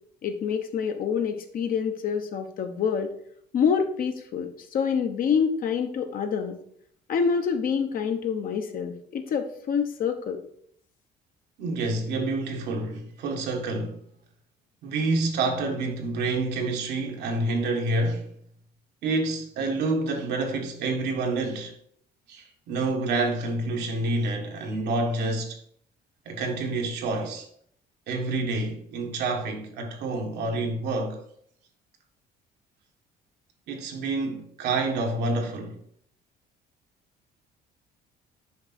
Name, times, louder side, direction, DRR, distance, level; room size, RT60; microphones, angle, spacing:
voice 1, 0.2-3.1 3.5-6.6 7.1-10.4, left 6 dB, 55° left, 1.0 m, -26 dB
voice 2, 11.6-14.0 14.8-18.3 19.0-21.7 22.3-25.6 26.2-27.5 28.1-31.2 33.7-35.8, right 2 dB, 80° right, 1.4 m, -28 dB
6.4 x 4.8 x 4.2 m
cardioid pair, 110°, 17 cm